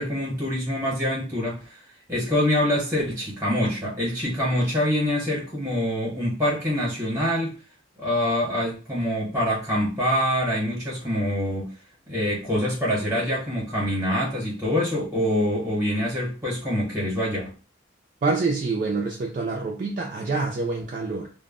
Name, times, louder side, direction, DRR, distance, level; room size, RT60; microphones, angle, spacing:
voice 1, 0.0-1.6 2.1-7.5 8.0-11.7 12.1-17.5, equal, 15° right, 0.9 m, -25 dB
voice 2, 18.2-21.3, right 3 dB, 40° right, 0.3 m, -26 dB
2.0 x 2.0 x 3.5 m
head